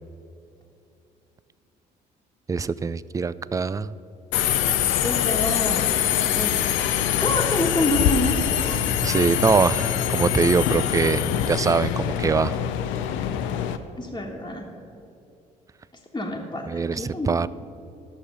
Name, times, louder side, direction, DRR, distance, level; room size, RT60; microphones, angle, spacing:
voice 1, 2.5-3.9 9.0-12.6 16.7-17.5, right 5 dB, 15° right, 17 dB, 0.3 m, -23 dB
Subway metro underground, 4.3-13.8, left 10 dB, 65° left, 0.6 m, -24 dB
voice 2, 5.0-6.0 6.3-6.6 7.1-8.8 14.0-14.7 16.1-17.3, left 1 dB, 15° left, -4 dB, 1.5 m, -27 dB
11.5 x 6.5 x 6.7 m, 2.7 s
hypercardioid pair, 50°, 21 cm